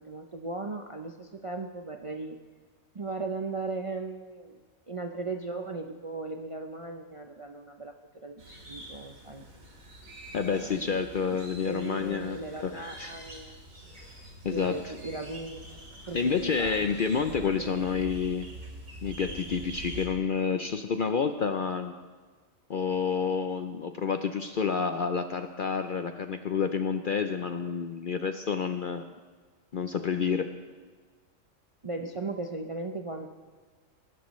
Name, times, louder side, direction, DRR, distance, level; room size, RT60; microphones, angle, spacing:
voice 1, 0.0-2.4 2.9-4.6 4.9-9.5 10.5-11.1 11.7-13.6 14.5-15.7 16.1-17.0 17.3-17.9 31.8-33.3, right 3 dB, 40° right, 4 dB, 0.5 m, -37 dB
sound 1, 8.4-20.1, right 1 dB, 80° right, 2.7 m, -45 dB
voice 2, 10.3-13.1 14.4-14.7 16.1-18.5 19.0-21.9 22.7-29.1 29.7-30.5, left 6 dB, 55° left, 7 dB, 0.6 m, -29 dB
21.5 x 12.0 x 3.1 m, 1.4 s
omnidirectional pair, 1.4 m